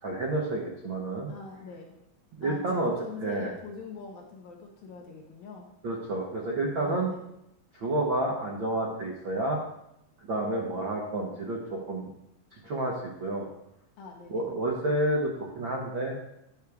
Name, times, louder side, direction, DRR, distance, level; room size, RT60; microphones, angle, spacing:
voice 1, 0.0-1.3 2.3-2.9 3.2-3.5 5.8-7.1 7.7-9.6 10.2-12.1 12.5-13.5 14.3-16.1, right 1 dB, 70° right, -2 dB, 1.2 m, -30 dB
voice 2, 1.3-2.0 2.4-5.7 6.7-7.2 14.0-14.5, left 5 dB, 65° left, 0 dB, 2.1 m, -44 dB
11.0 x 6.4 x 3.5 m, 0.82 s
omnidirectional pair, 4.0 m